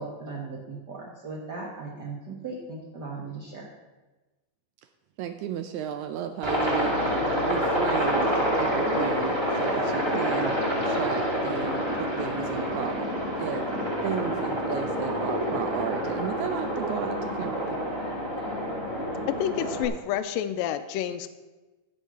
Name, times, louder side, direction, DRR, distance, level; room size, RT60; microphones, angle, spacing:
voice 1, 0.0-3.7, right 3 dB, 55° right, -3 dB, 1.1 m, -38 dB
voice 2, 5.2-7.0 7.4-13.1 13.4-13.7 14.0-17.8, right 9 dB, 85° right, 8 dB, 1.7 m, -34 dB
Aircraft, 6.4-19.9, equal, 10° right, 1.6 m, -27 dB
voice 3, 19.4-21.3, left 10 dB, 85° left, 11 dB, 2.3 m, -29 dB
15.0 x 5.5 x 6.0 m, 1.2 s
omnidirectional pair, 3.9 m